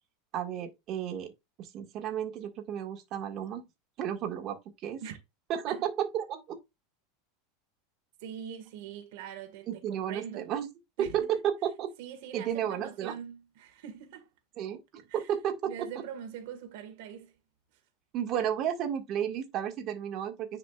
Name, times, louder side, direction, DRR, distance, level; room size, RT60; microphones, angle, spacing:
voice 1, 0.3-1.3 1.6-3.6 4.0-5.0 5.5-6.6 9.7-10.7 11.0-11.9 12.3-13.1 14.6-15.9 18.1-20.6, right 9 dB, 45° right, 1.8 m, -32 dB
voice 2, 8.2-10.4 11.0-11.4 12.0-14.3 15.1-15.2 15.6-17.3, right 9 dB, 70° right, 1.7 m, -43 dB
9.9 x 5.0 x 2.4 m
supercardioid pair, 115°, 0 cm